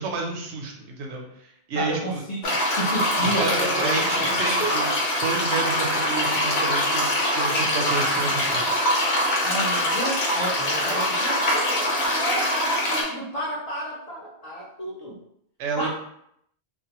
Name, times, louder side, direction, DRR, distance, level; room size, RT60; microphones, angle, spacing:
voice 1, 0.0-2.2 3.2-4.9 5.2-7.1 7.3-8.7 15.6-15.9, right 3 dB, 85° right, 1 dB, 0.9 m, -30 dB
voice 2, 1.8-4.3 4.6-4.7 9.4-15.2 15.8-15.9, right 1 dB, 50° left, -4 dB, 0.5 m, -31 dB
sound 1, 2.4-13.0, left 1 dB, 85° left, 1.0 m, -23 dB
2.5 x 2.1 x 2.8 m, 0.74 s
omnidirectional pair, 1.1 m